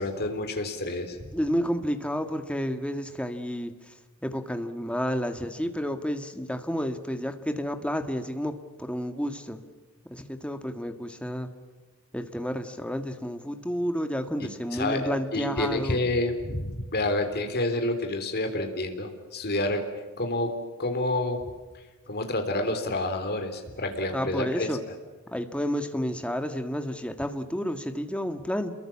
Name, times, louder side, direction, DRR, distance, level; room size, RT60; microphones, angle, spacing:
voice 1, 0.0-1.2 14.4-19.8 20.2-20.5 20.8-21.4 22.1-24.7, left 2 dB, 45° left, 6 dB, 3.6 m, -28 dB
voice 2, 1.3-3.9 4.2-9.6 10.1-11.5 12.1-16.0 24.1-24.8 25.3-28.7, equal, 5° left, 8 dB, 1.7 m, -30 dB
28.5 x 22.5 x 7.3 m, 1.3 s
head